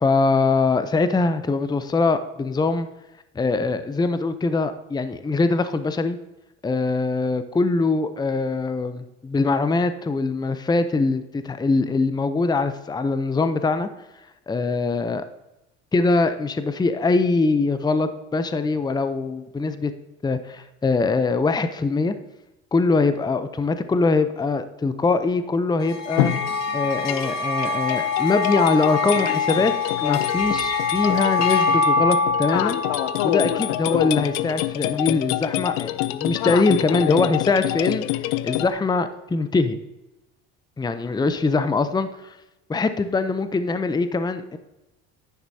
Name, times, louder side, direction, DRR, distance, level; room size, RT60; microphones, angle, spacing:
voice 1, 0.0-2.9 3.4-6.2 6.6-13.9 14.5-15.2 15.9-19.9 20.2-22.1 22.7-26.3 26.7-32.8 33.2-38.0 38.4-39.8 40.8-42.4 42.7-44.6, left 3 dB, 10° left, 11 dB, 0.6 m, -22 dB
sound 1, 25.8-34.5, left 4 dB, 50° left, 1.5 m, -24 dB
sound 2, 26.2-38.7, left 15 dB, 75° left, 0.6 m, -27 dB
10.5 x 9.4 x 2.8 m, 0.96 s
hypercardioid pair, 75°, 35 cm